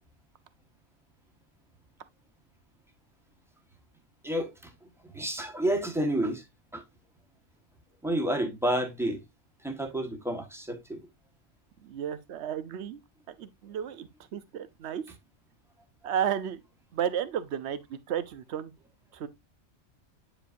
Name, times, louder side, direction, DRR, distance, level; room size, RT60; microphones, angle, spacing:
voice 1, 4.2-4.7 5.1-6.4 6.7-6.8 8.0-9.2 9.6-11.0, right 1 dB, ahead, 1.3 m, -30 dB
voice 2, 11.8-13.0 13.3-15.0 16.0-16.6 16.9-18.7 19.1-19.3, right 9 dB, 70° right, 1.0 m, -33 dB
8.7 x 5.0 x 2.6 m
omnidirectional pair, 1.2 m